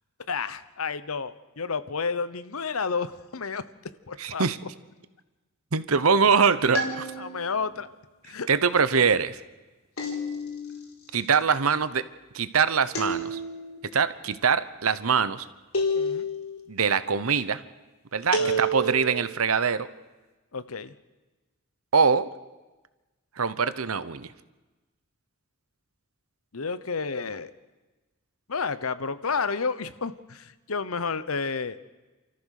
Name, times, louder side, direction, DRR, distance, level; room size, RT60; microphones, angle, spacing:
voice 1, 0.3-3.6 4.1-4.4 7.2-7.9 8.2-8.5 16.0-16.3 18.4-18.6 20.5-20.9 26.5-27.5 28.5-31.8, left 5 dB, 85° left, 14 dB, 1.0 m, -31 dB
voice 2, 4.2-4.6 5.7-7.1 8.5-9.4 11.1-12.0 12.3-13.4 13.9-15.5 16.7-17.6 18.1-19.9 21.9-22.3 23.4-24.3, right 5 dB, 85° right, 14 dB, 1.0 m, -23 dB
sound 1, 6.7-7.6 10.0-10.8 12.9-13.8 15.7-16.6 18.3-19.2, equal, 70° left, 4.5 m, -29 dB
28.5 x 14.0 x 6.6 m, 1.2 s
head